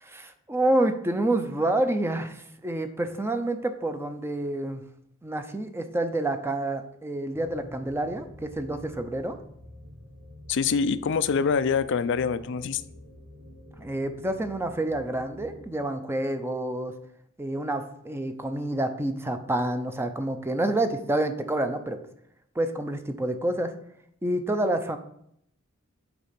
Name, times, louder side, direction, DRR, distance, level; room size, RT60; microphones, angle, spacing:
voice 1, 0.0-4.8 5.2-9.4 13.8-16.9 17.4-22.0 22.6-23.7 24.2-25.0, right 1 dB, 10° right, 8 dB, 0.6 m, -28 dB
sound 1, 7.3-15.6, left 1 dB, 85° right, 2.6 m, -48 dB
voice 2, 10.5-12.8, left 6 dB, 60° left, 14 dB, 0.4 m, -25 dB
8.1 x 4.1 x 5.2 m, 0.71 s
head